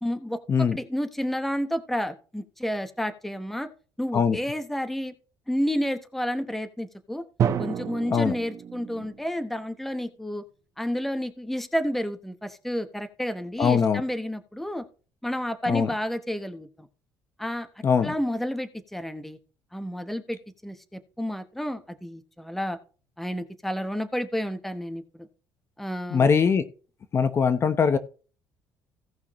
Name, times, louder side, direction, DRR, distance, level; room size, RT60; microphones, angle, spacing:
voice 1, 0.0-3.7 4.0-5.1 5.5-7.2 7.6-10.4 10.8-14.8 15.2-16.9 17.4-17.7 18.0-19.4 19.7-22.8 23.2-25.3 25.8-26.3, equal, 5° left, 1.0 m, -30 dB
Drum, 7.4-9.3, right 8 dB, 45° right, 1.1 m, -29 dB
voice 2, 13.6-14.0 15.7-15.9 17.8-18.1 26.1-26.6 27.1-28.0, left 6 dB, 35° left, 0.9 m, -21 dB
17.0 x 5.8 x 3.1 m
cardioid pair, 135°, 8 cm